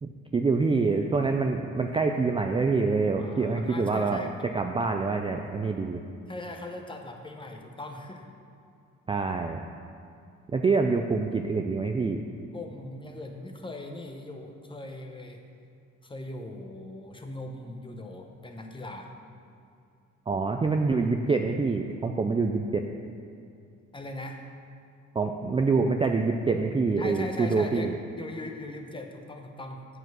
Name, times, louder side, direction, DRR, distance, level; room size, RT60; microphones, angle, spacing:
voice 1, 0.0-4.2 4.5-6.0 9.1-9.6 10.5-12.2 20.3-22.8 25.1-28.0, right 4 dB, 20° right, 4 dB, 0.4 m, -26 dB
voice 2, 3.2-4.5 6.3-8.3 12.5-15.4 16.0-19.1 23.9-24.4 27.0-29.9, left 2 dB, 15° left, 3 dB, 0.9 m, -40 dB
7.7 x 4.8 x 6.2 m, 2.5 s
cardioid pair, 90°, 30 cm